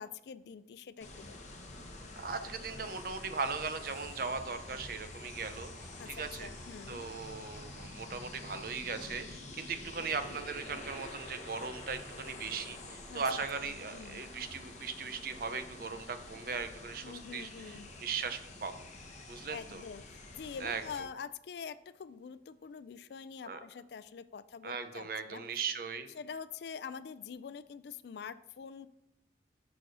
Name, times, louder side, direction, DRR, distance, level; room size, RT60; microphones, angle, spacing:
voice 1, 0.0-1.5 6.0-7.0 13.1-14.3 17.0-17.9 19.5-25.4 26.2-28.9, left 6 dB, 65° left, 14 dB, 0.3 m, -45 dB
sound 1, 1.0-21.0, left 2 dB, 40° left, 1.1 m, -48 dB
voice 2, 2.2-5.7 6.1-6.5 6.9-18.7 19.3-19.8 20.6-20.8 23.5-23.6 24.6-26.1, right 5 dB, 50° right, 9 dB, 0.6 m, -38 dB
sound 2, 5.2-16.0, equal, ahead, 1.8 m, -62 dB
6.3 x 4.7 x 6.2 m, 0.83 s
head